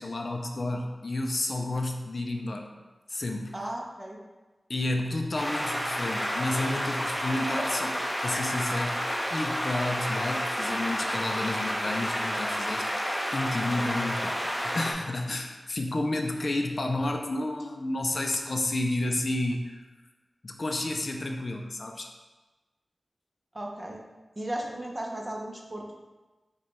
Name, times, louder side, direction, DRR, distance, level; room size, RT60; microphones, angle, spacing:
voice 1, 0.0-2.7 3.1-3.6 4.7-9.0 9.3-12.9 13.3-19.9 20.4-22.1, left 2 dB, 50° left, 3 dB, 0.4 m, -31 dB
voice 2, 3.5-4.2 23.5-24.0 24.4-26.0, right 1 dB, 25° right, 0 dB, 0.6 m, -35 dB
sound 1, 5.3-14.9, equal, 10° left, 0.8 m, -30 dB
4.9 x 2.2 x 4.2 m, 1.2 s
wide cardioid pair, 80°, 0 cm